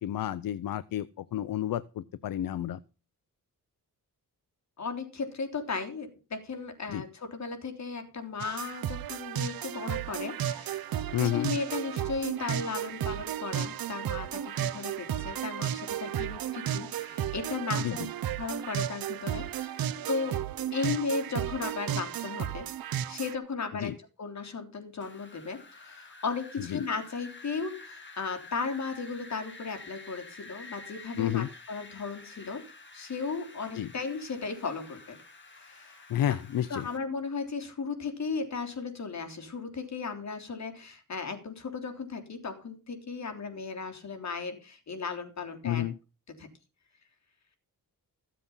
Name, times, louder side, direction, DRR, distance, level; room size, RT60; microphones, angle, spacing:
voice 1, 0.0-2.8 6.9-7.0 11.1-11.5 17.8-18.1 23.7-24.0 26.6-26.8 31.2-31.5 33.7-33.9 36.1-36.9 45.6-46.0, left 12 dB, 70° left, 16 dB, 0.7 m, -31 dB
voice 2, 4.8-18.0 18.4-20.4 20.7-22.7 23.1-32.6 32.9-35.2 35.5-36.4 36.7-45.8 46.4-46.5, left 4 dB, 50° left, 5 dB, 3.4 m, -36 dB
sound 1, 8.4-23.4, right 10 dB, 75° right, 0.8 m, -33 dB
Wind, 25.0-37.0, left 3 dB, 30° left, 2.3 m, -49 dB
15.0 x 7.6 x 5.6 m, 0.33 s
wide cardioid pair, 120°, 36 cm